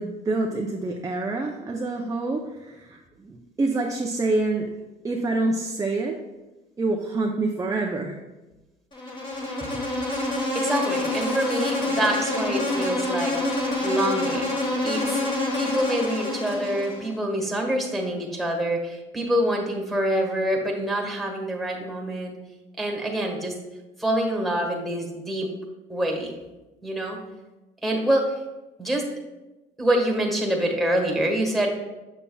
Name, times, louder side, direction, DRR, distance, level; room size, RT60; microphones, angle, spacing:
voice 1, 0.0-4.7 5.0-6.1 6.8-8.2, right 2 dB, 20° right, 0 dB, 0.6 m, -27 dB
Insect, 8.9-17.1, left 2 dB, 30° left, 1.6 m, -27 dB
voice 2, 10.5-13.4 13.8-22.4 22.8-23.5 24.0-25.5 25.9-26.3 26.8-27.2 27.8-28.3 28.8-29.0 29.8-31.8, right 1 dB, ahead, 0 dB, 1.5 m, -26 dB
7.1 x 6.8 x 2.3 m, 1.1 s
cardioid pair, 110°, 17 cm